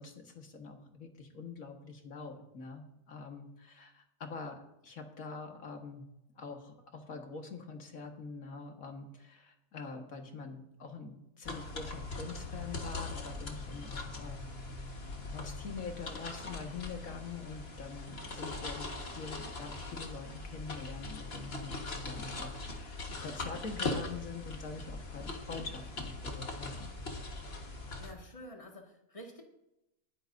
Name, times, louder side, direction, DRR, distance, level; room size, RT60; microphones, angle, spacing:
voice 1, 0.0-6.1 6.4-14.5 14.7-14.9 15.3-27.0, left 4 dB, 85° left, 3 dB, 2.0 m, -45 dB
sound 1, 11.4-28.1, left 2 dB, 50° left, 1.7 m, -41 dB
voice 2, 28.0-29.4, equal, 25° left, 0 dB, 1.9 m, -49 dB
20.5 x 9.9 x 2.7 m, 0.89 s
omnidirectional pair, 1.4 m